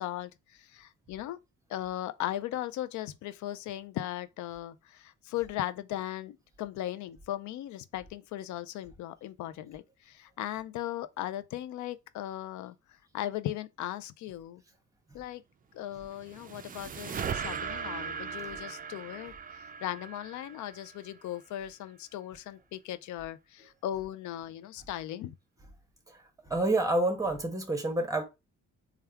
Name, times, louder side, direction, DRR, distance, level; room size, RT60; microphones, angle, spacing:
voice 1, 0.0-1.4 1.7-14.6 15.1-15.4 15.7-25.3, left 13 dB, 70° left, 0.5 m, -38 dB
sound 1, 15.9-21.3, right 6 dB, 30° right, 0.4 m, -39 dB
voice 2, 26.5-28.2, right 2 dB, 10° right, 1.1 m, -28 dB
3.4 x 2.3 x 4.4 m
cardioid pair, 90°, 30 cm